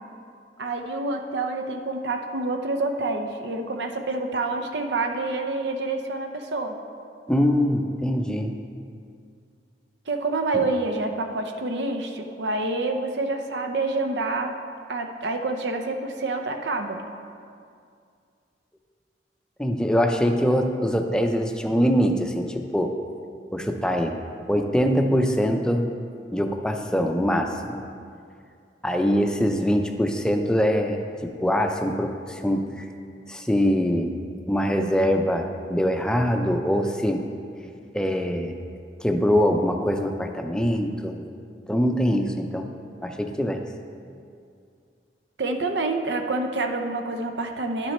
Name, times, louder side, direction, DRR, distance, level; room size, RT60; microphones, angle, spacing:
voice 1, 0.6-6.8 10.1-14.5 14.9-17.0 45.4-47.9, right 2 dB, 80° right, 5 dB, 0.7 m, -27 dB
voice 2, 7.3-8.6 10.5-10.6 19.6-23.0 23.5-24.2 24.5-25.9 26.3-27.8 28.8-32.9 33.3-34.1 34.5-37.3 37.9-38.5 39.0-41.2 41.7-42.7 43.0-43.6, equal, 5° left, 4 dB, 0.5 m, -23 dB
10.5 x 6.2 x 4.2 m, 2.3 s
head